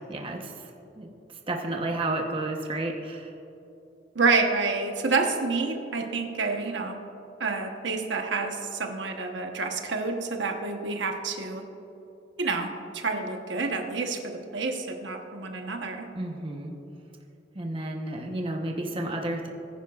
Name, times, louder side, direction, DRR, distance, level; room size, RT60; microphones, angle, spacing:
voice 1, 0.1-0.7 1.0-1.1 1.5-3.3 16.1-16.7 17.5-19.5, right 2 dB, 30° right, 1 dB, 0.9 m, -31 dB
voice 2, 4.1-7.0 7.4-11.6 12.4-12.7 12.9-16.1, right 4 dB, 70° right, 3 dB, 1.0 m, -28 dB
19.0 x 10.0 x 2.4 m, 2.9 s
head